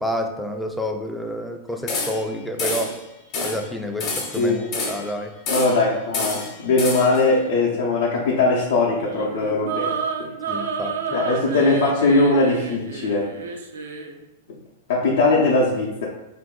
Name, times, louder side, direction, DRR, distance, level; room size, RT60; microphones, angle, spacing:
voice 1, 0.0-3.0 3.4-4.6 4.9-5.3 10.5-10.9, equal, ahead, 4 dB, 0.3 m, -29 dB
sound 1, 1.9-2.3 2.6-3.0 3.3-3.7 4.0-5.1 5.5-5.9 6.1-7.2, left 3 dB, 45° left, 0.8 m, -28 dB
voice 2, 5.5-9.9 10.2-10.3 11.1-13.3 14.9-16.1, left 3 dB, 65° left, -5 dB, 0.6 m, -20 dB
sound 2, 8.9-14.2, right 5 dB, 70° right, 0.4 m, -30 dB
2.6 x 2.2 x 3.6 m, 0.96 s
hypercardioid pair, 105°, 0 cm